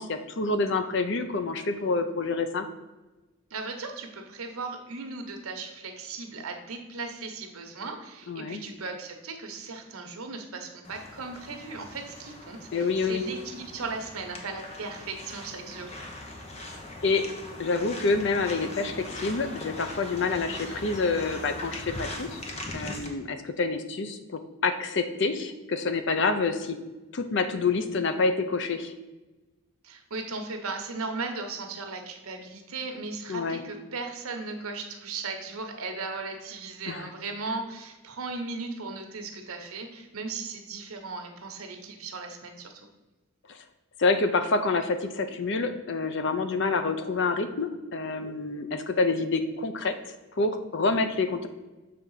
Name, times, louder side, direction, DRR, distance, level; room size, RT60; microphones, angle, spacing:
voice 1, 0.0-2.7 8.3-8.6 12.7-13.2 17.0-17.3 17.6-22.4 22.7-26.8 27.1-28.9 33.3-33.6 36.9-37.1 43.5-43.6 44.0-49.9 50.4-51.5, left 3 dB, 55° left, 9 dB, 0.6 m, -27 dB
voice 2, 3.5-16.0 29.8-42.9, right 3 dB, 90° right, 5 dB, 1.0 m, -37 dB
sound 1, 10.8-23.1, left 2 dB, 30° left, 0.9 m, -41 dB
6.7 x 3.5 x 5.5 m, 1.1 s
head